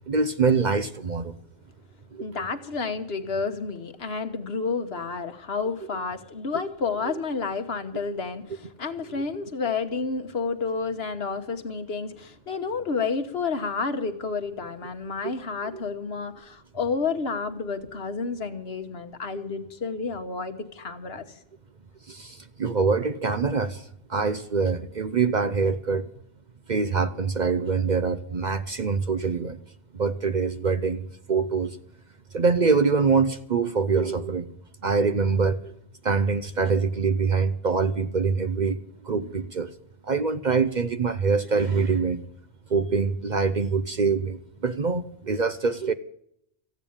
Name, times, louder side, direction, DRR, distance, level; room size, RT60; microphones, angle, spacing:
voice 1, 0.1-1.4 2.1-2.4 15.7-15.8 22.1-26.1 26.7-29.6 29.9-31.8 32.3-34.5 34.8-35.7 36.0-38.8 39.0-39.7 40.0-42.2 42.7-45.9, right 5 dB, 45° right, 10 dB, 0.7 m, -24 dB
voice 2, 2.2-21.2, left 4 dB, 60° left, 8 dB, 1.4 m, -30 dB
14.5 x 9.0 x 8.7 m, 0.72 s
omnidirectional pair, 1.2 m